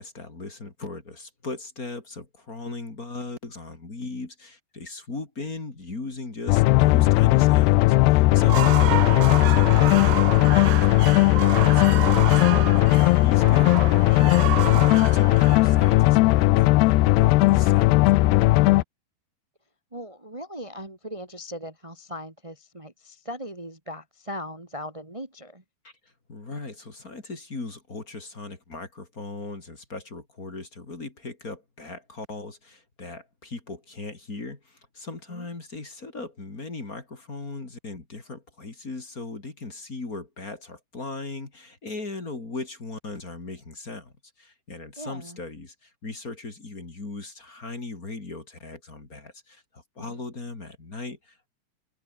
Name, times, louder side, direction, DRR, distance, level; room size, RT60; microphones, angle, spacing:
voice 1, 0.0-8.6 9.1-10.9 11.4-18.6 25.8-25.9 26.3-51.5, left 3 dB, 20° left, 3.1 m, -38 dB
sound 1, 6.5-18.8, left 20 dB, 80° left, 2.5 m, -18 dB
sound 2, 8.3-16.4, right 16 dB, 75° right, 2.2 m, -31 dB
voice 2, 19.9-25.6 35.3-35.5 45.0-45.4 50.0-50.2, equal, 30° right, 0.6 m, -39 dB
open air
omnidirectional pair, 5.3 m